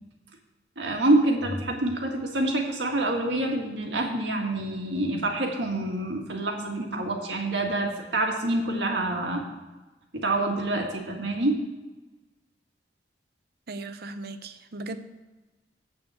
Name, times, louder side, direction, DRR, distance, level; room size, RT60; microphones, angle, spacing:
voice 1, 0.8-9.4 10.1-11.6, right 2 dB, 85° right, 1 dB, 1.8 m, -26 dB
voice 2, 13.7-15.0, right 2 dB, 60° right, 10 dB, 0.7 m, -37 dB
8.3 x 7.1 x 6.7 m, 1.2 s
head